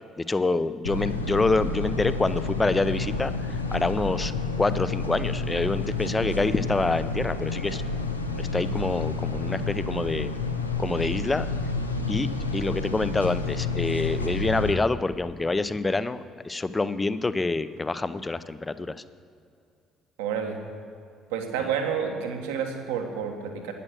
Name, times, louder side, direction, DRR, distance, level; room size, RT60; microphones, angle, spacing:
voice 1, 0.2-4.3 4.6-7.8 8.4-10.3 10.8-11.5 12.1-19.0 21.6-21.7, left 3 dB, 20° left, 14 dB, 0.6 m, -26 dB
sound 1, 0.8-14.7, left 3 dB, 90° left, 0.7 m, -30 dB
voice 2, 20.2-20.6 21.3-23.7, right 7 dB, 70° right, 4 dB, 1.4 m, -29 dB
11.0 x 9.8 x 6.4 m, 2.5 s
figure-of-eight pair, 50°, 0 cm